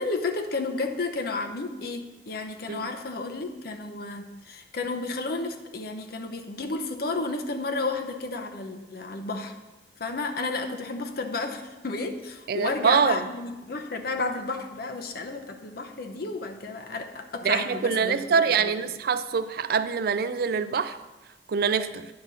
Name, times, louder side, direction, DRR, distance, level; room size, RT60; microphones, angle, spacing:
voice 1, 0.0-9.5 10.0-18.7, left 3 dB, 60° left, 5 dB, 0.8 m, -32 dB
voice 2, 12.5-13.2 17.4-21.0 21.5-22.1, right 6 dB, 60° right, 12 dB, 0.4 m, -24 dB
9.4 x 4.1 x 6.2 m, 1.1 s
head